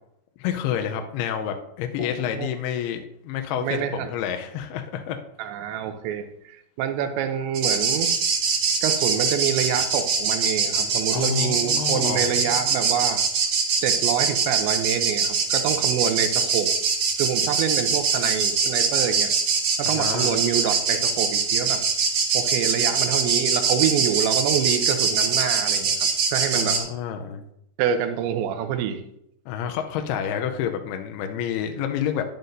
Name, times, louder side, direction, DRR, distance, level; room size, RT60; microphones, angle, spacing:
voice 1, 0.4-5.2 11.1-12.3 19.8-20.4 26.5-27.4 29.5-32.2, left 9 dB, 80° left, 5 dB, 2.4 m, -29 dB
voice 2, 3.6-4.1 5.4-8.1 8.8-13.2 13.8-16.7 17.2-19.3 19.8-21.8 22.3-26.8 27.8-29.0, right 9 dB, 90° right, 8 dB, 3.1 m, -26 dB
sound 1, 7.5-26.8, right 5 dB, 55° right, 2.6 m, -23 dB
11.0 x 10.5 x 2.7 m, 0.78 s
omnidirectional pair, 5.1 m